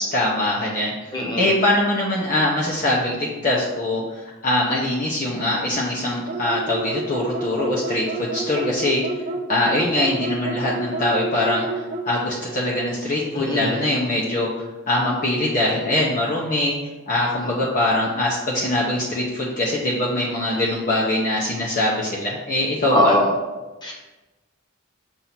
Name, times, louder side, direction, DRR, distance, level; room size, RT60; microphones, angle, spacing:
voice 1, 0.1-9.0 9.5-16.7 17.1-23.1, left 1 dB, 35° left, -4 dB, 0.8 m, -23 dB
voice 2, 1.1-1.5 13.3-13.7 22.9-23.3 23.8-23.9, equal, 20° left, -2 dB, 1.1 m, -20 dB
sound 1, 6.3-12.1, right 3 dB, 30° right, 0.6 m, -29 dB
7.3 x 2.7 x 5.7 m, 1.2 s
head